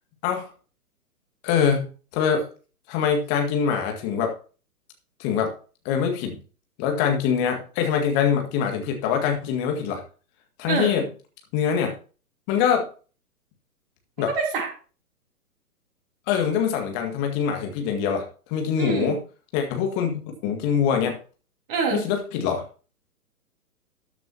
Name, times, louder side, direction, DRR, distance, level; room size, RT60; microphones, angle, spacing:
voice 1, 1.4-1.9 2.1-2.5 2.9-4.3 5.2-5.5 5.9-6.4 6.8-10.0 10.6-11.0 11.5-11.9 12.5-12.9 14.2-14.3 16.3-19.2 19.5-21.2 21.9-22.6, left 7 dB, 25° left, 3 dB, 2.0 m, -24 dB
voice 2, 14.2-14.7 18.8-19.2 21.7-22.1, right 5 dB, 35° right, 0 dB, 3.3 m, -26 dB
13.5 x 9.2 x 2.9 m, 0.37 s
figure-of-eight pair, 125°, 46 cm